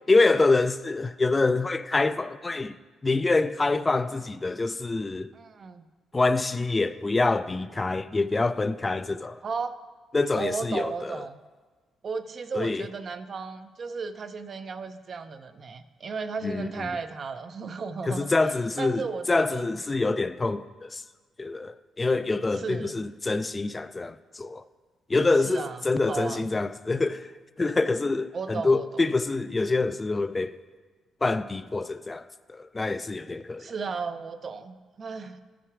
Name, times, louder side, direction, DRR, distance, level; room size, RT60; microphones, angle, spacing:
voice 1, 0.1-2.8 3.0-5.3 6.1-9.4 10.1-11.2 12.5-12.9 16.4-16.9 18.1-21.0 21.4-24.6 25.1-27.3 27.6-30.6 31.2-32.2 32.5-33.7, left 3 dB, 25° left, 0.3 m, -26 dB
voice 2, 5.3-5.8 9.4-9.8 10.3-11.4 12.0-19.7 22.5-23.0 25.4-26.5 28.3-28.9 33.6-35.4, right 5 dB, 45° right, 0.5 m, -35 dB
13.0 x 6.0 x 4.7 m
cardioid pair, 90°, 0 cm